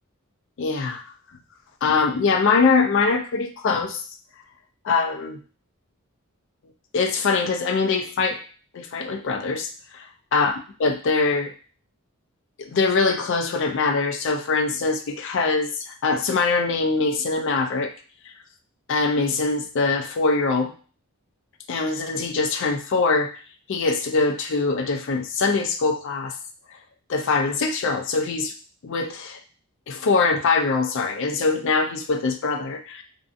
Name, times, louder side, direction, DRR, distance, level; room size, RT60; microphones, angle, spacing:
voice 1, 0.6-1.0 1.8-4.0 4.8-5.4 6.9-8.4 8.7-11.5 12.6-17.9 18.9-20.7 21.7-23.3 23.7-26.3 27.1-28.5 28.8-29.4 29.9-33.0, left 4 dB, 60° left, 5 dB, 0.4 m, -23 dB
2.6 x 2.5 x 2.4 m, 0.38 s
head